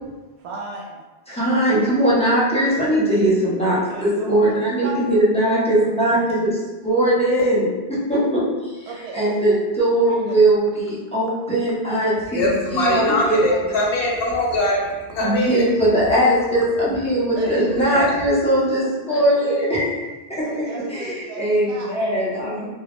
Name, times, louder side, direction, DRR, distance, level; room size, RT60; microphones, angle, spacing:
voice 1, 0.4-1.0 3.7-5.2 5.6-5.9 8.9-9.6 10.1-10.4 17.3-17.7 18.8-19.5 20.3-21.9 22.3-22.7, right 3 dB, 75° right, -2 dB, 0.8 m, -35 dB
voice 2, 1.4-6.5 6.9-7.7 9.1-10.6 11.1-12.4 12.7-13.4 15.2-18.8 19.1-19.7 21.0-21.1 21.4-22.5, right 1 dB, 10° left, -9 dB, 0.4 m, -19 dB
voice 3, 12.3-15.6 17.4-18.1, left 1 dB, 70° left, -3 dB, 0.8 m, -22 dB
2.2 x 2.0 x 2.9 m, 1.2 s
omnidirectional pair, 1.1 m